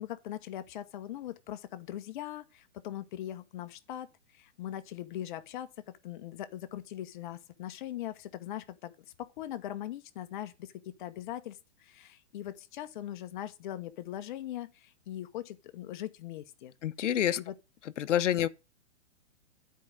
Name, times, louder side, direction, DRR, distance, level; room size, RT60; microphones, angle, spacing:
voice 1, 0.0-5.7 6.0-8.9 9.2-10.7 11.0-16.7 17.4-17.5, left 12 dB, 45° left, 0.9 m, -40 dB
voice 2, 16.8-17.4 18.0-18.5, left 11 dB, 85° left, 0.8 m, -27 dB
9.6 x 4.7 x 5.0 m
hypercardioid pair, 150°, 35 cm